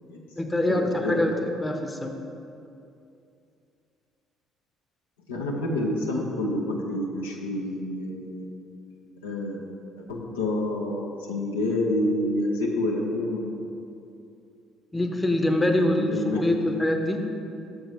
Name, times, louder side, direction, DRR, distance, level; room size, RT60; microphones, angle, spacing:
voice 1, 0.4-1.3 1.6-2.2 14.9-17.2, left 1 dB, 15° left, 3 dB, 0.7 m, -24 dB
voice 2, 5.3-8.5 9.2-9.6 10.0-13.6 15.6-16.7, left 1 dB, 85° left, -1 dB, 0.7 m, -28 dB
6.6 x 4.6 x 5.2 m, 2.6 s
hypercardioid pair, 55°, 0 cm